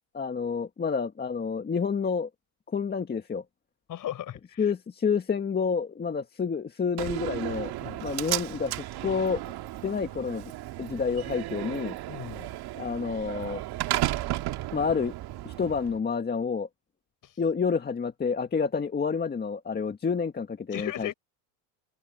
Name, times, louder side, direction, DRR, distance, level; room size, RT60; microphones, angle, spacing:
voice 1, 0.1-2.3 2.7-3.4 4.6-7.7 8.0-9.6 9.8-10.5 10.8-12.0 12.8-13.6 14.7-15.1 15.5-16.7 17.4-21.1, left 5 dB, 20° left, 1.8 m, -29 dB
voice 2, 3.9-4.6 7.8-8.0 12.1-12.5 20.7-21.1, left 12 dB, 40° left, 4.8 m, -36 dB
Slam, 7.0-16.0, right 15 dB, 50° right, 2.2 m, -34 dB
open air
supercardioid pair, 120°, 47 cm